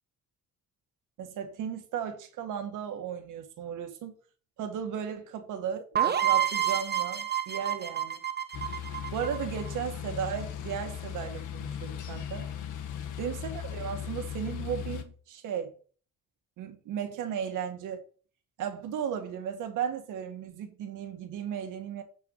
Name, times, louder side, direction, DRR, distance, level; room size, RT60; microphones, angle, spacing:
voice 1, 1.2-4.1 4.6-8.2 9.1-12.5 13.2-15.7 16.6-18.0 18.6-22.0, right 8 dB, 85° right, 1.9 m, -35 dB
sound 1, 5.9-9.7, right 10 dB, 35° right, 1.1 m, -28 dB
sound 2, 8.5-15.0, left 9 dB, 85° left, 1.8 m, -37 dB
9.3 x 4.9 x 6.7 m
cardioid pair, 90°, 30 cm